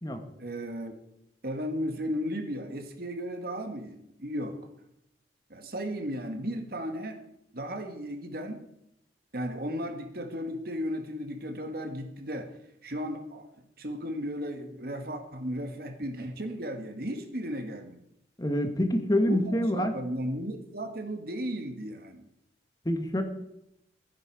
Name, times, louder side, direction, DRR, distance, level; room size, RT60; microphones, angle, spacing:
voice 1, 0.4-0.9 1.4-4.6 5.5-7.2 7.5-8.6 9.3-12.6 12.8-13.5 13.8-18.0 19.3-22.3, equal, 55° right, 5 dB, 1.8 m, -35 dB
voice 2, 18.4-19.9 22.8-23.2, left 1 dB, 20° left, 6 dB, 1.3 m, -26 dB
15.0 x 10.5 x 4.9 m, 0.81 s
head